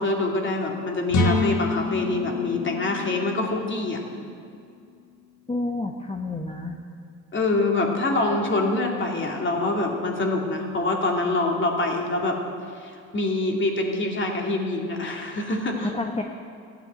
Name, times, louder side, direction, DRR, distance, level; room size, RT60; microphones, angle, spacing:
voice 1, 0.0-4.0 7.3-12.4 12.8-15.9, left 2 dB, 40° left, 1 dB, 2.6 m, -25 dB
sound 1, 1.1-4.9, left 3 dB, 70° left, 1.8 m, -27 dB
voice 2, 5.5-6.8 15.8-16.2, left 2 dB, 20° left, 3 dB, 1.0 m, -29 dB
14.0 x 9.5 x 8.1 m, 2.4 s
cardioid pair, 90°, 30 cm